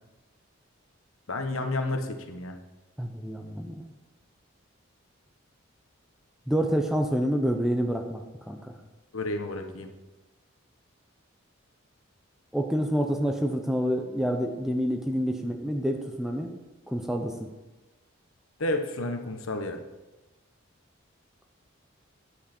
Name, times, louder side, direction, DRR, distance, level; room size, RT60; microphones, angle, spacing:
voice 1, 1.3-2.6 9.1-9.9 18.6-19.8, left 2 dB, 80° left, 5 dB, 1.1 m, -31 dB
voice 2, 3.0-3.9 6.5-8.7 12.5-16.5 16.9-17.5, equal, ahead, 4 dB, 0.7 m, -28 dB
9.8 x 7.8 x 4.4 m, 1.1 s
head